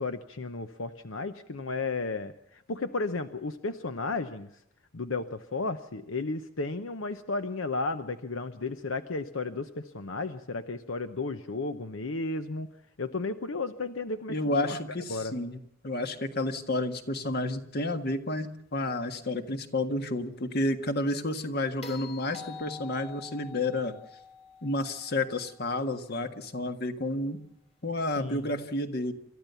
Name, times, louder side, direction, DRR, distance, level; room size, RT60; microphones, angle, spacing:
voice 1, 0.0-4.5 4.9-12.7 13.0-14.8 15.1-15.4 28.2-28.5, left 3 dB, 80° left, 10 dB, 0.9 m, -33 dB
voice 2, 14.3-15.6 15.8-23.9 24.6-27.4 27.8-29.1, left 2 dB, 55° left, 7 dB, 1.7 m, -30 dB
sound 1, 21.8-26.1 28.3-28.4, left 6 dB, 30° left, 3.0 m, -46 dB
28.5 x 13.5 x 6.9 m, 0.78 s
head